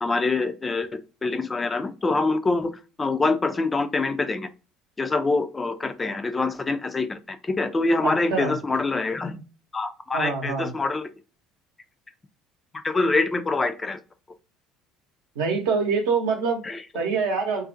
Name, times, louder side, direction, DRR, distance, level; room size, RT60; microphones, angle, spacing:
voice 1, 0.0-0.9 1.2-2.7 3.0-4.5 5.0-9.4 9.7-11.1 12.8-14.0 16.6-16.8, left 3 dB, 25° left, 0.3 m, -25 dB
voice 2, 8.0-8.5 10.1-10.7 15.4-16.6 16.9-17.6, right 5 dB, 70° right, 0.7 m, -25 dB
2.4 x 2.1 x 2.6 m
hypercardioid pair, 60°, 0 cm